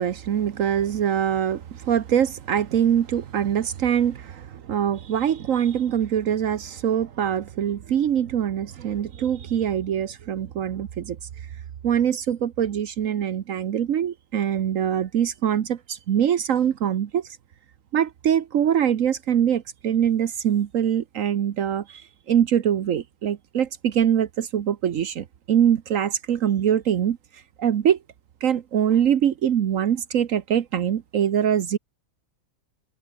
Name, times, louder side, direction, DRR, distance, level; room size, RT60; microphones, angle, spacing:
voice 1, 0.0-11.2 11.8-17.3 17.9-27.2 27.6-28.0 28.4-31.8, right 9 dB, 70° right, 1.3 m, -23 dB
omnidirectional pair, 1.5 m